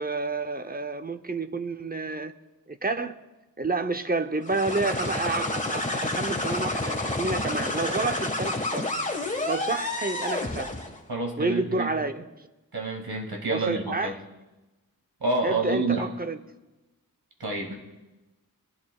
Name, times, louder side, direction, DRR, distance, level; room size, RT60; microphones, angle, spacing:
voice 1, 0.0-2.3 2.7-3.1 3.6-8.9 9.5-10.7 11.4-12.3 13.5-14.2 15.4-16.4, right 3 dB, 25° right, 0.6 m, -29 dB
sound 1, 4.4-11.0, left 2 dB, 20° left, 1.4 m, -29 dB
voice 2, 11.1-11.9 12.7-14.2 15.2-16.1 17.4-17.7, right 3 dB, 90° right, 2.1 m, -28 dB
22.5 x 11.5 x 2.3 m
wide cardioid pair, 75°, 36 cm